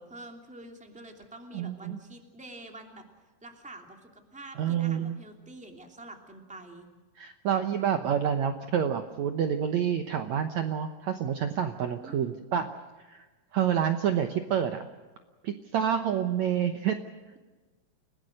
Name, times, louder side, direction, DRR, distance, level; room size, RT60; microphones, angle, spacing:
voice 1, 0.1-3.0 3.4-6.9 12.0-12.4, right 2 dB, ahead, 3 dB, 2.0 m, -47 dB
voice 2, 1.5-2.0 4.6-5.1 7.2-12.7 13.0-13.2 13.5-14.9 15.4-17.0, right 8 dB, 80° right, 7 dB, 1.6 m, -28 dB
30.0 x 19.0 x 6.6 m, 1.3 s
omnidirectional pair, 4.7 m